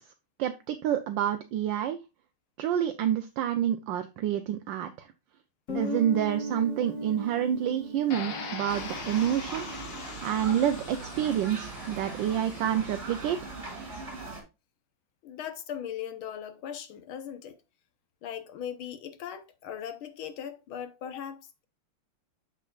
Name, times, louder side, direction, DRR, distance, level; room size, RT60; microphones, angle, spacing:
voice 1, 0.4-2.0 2.6-5.1 5.7-9.7 10.2-13.5, right 10 dB, 75° right, 1.3 m, -28 dB
Guitar, 5.7-10.3, right 1 dB, 35° left, 1.7 m, -37 dB
sound 1, 8.1-13.1, left 5 dB, 60° left, 1.8 m, -42 dB
sound 2, 8.7-14.4, right 3 dB, 35° right, 3.5 m, -40 dB
voice 2, 15.2-17.6 18.2-21.7, left 9 dB, 75° left, 1.7 m, -39 dB
8.2 x 6.9 x 2.4 m
omnidirectional pair, 2.3 m